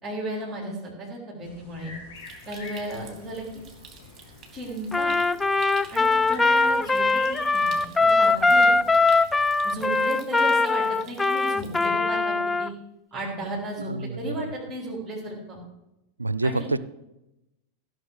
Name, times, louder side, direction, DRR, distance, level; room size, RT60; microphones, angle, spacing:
voice 1, 0.0-1.9 2.5-3.4 4.5-5.1 5.9-8.8 9.6-12.7 13.1-15.6 16.4-16.7, right 1 dB, 5° right, -4 dB, 3.7 m, -34 dB
sound 1, 1.4-9.7, left 3 dB, 55° left, 4.2 m, -46 dB
Stream, 2.1-11.9, right 6 dB, 25° right, 2.5 m, -50 dB
Trumpet, 4.9-12.7, left 3 dB, 10° left, 0.3 m, -21 dB
voice 2, 13.8-14.5 16.2-16.8, right 2 dB, 80° right, 17 dB, 0.4 m, -27 dB
15.5 x 6.1 x 6.6 m, 0.92 s
figure-of-eight pair, 90°, 0 cm